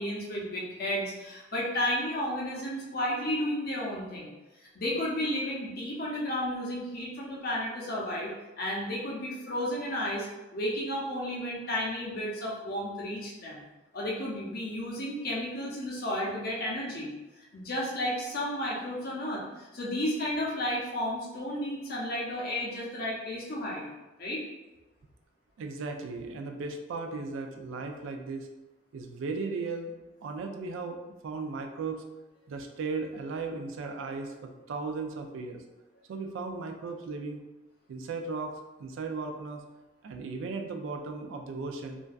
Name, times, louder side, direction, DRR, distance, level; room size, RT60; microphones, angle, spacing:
voice 1, 0.0-4.3 4.6-13.6 13.9-23.9 24.2-24.4, left 1 dB, 45° left, -4 dB, 0.5 m, -33 dB
voice 2, 25.6-28.5 28.9-29.9 30.2-31.0 31.2-32.0 32.5-35.6 36.1-37.4 37.9-39.6 40.0-42.0, right 4 dB, 70° right, 4 dB, 0.3 m, -36 dB
2.5 x 2.2 x 2.3 m, 1.1 s
head